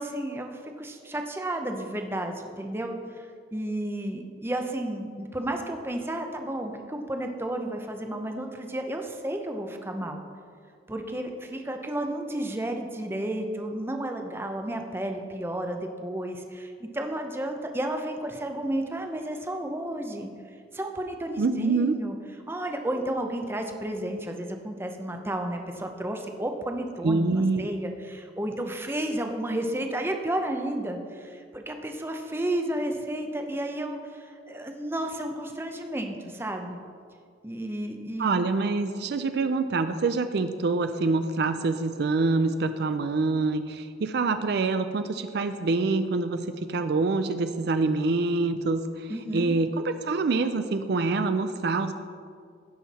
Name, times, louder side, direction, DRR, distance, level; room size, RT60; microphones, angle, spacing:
voice 1, 0.0-3.0 3.5-10.2 10.9-20.3 20.7-22.1 22.5-27.2 27.6-36.8 37.4-38.4 49.1-49.6, right 1 dB, 10° right, 4 dB, 0.6 m, -32 dB
voice 2, 21.4-21.9 27.0-27.7 38.2-49.1 49.3-51.9, right 3 dB, 55° right, 9 dB, 0.4 m, -26 dB
16.0 x 5.7 x 4.1 m, 2.2 s
head